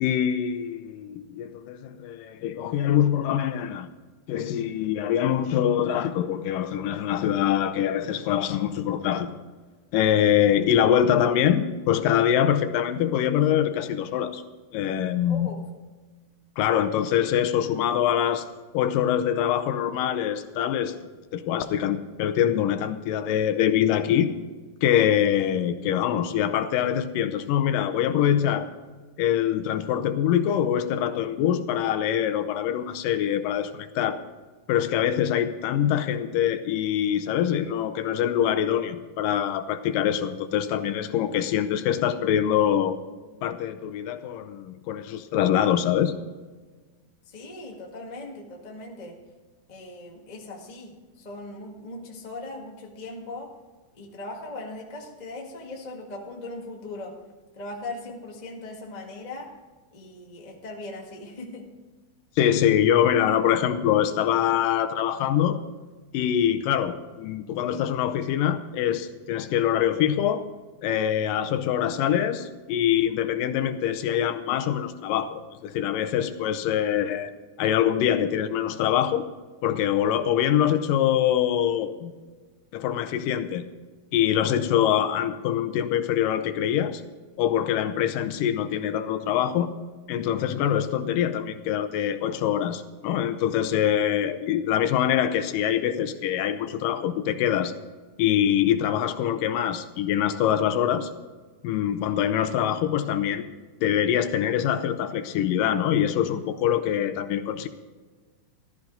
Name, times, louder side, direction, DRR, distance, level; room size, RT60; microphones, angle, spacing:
voice 1, 0.0-3.9 4.3-9.4 9.9-14.4 14.7-15.5 16.6-18.5 18.7-21.0 21.3-24.3 24.8-28.7 29.2-34.2 34.7-43.0 43.4-46.1 62.4-65.6 66.1-70.5 70.8-77.3 77.6-79.2 79.6-82.1 82.7-83.6 84.1-87.0 87.4-89.7 90.1-97.8 98.2-101.1 101.6-103.5 103.8-107.7, left 10 dB, 80° left, 10 dB, 2.3 m, -24 dB
voice 2, 15.3-15.6 47.3-49.2 49.7-53.5 53.9-57.1 57.5-59.5 59.9-61.7, left 2 dB, 30° left, 0 dB, 0.7 m, -39 dB
14.5 x 13.0 x 4.0 m, 1.3 s
omnidirectional pair, 4.0 m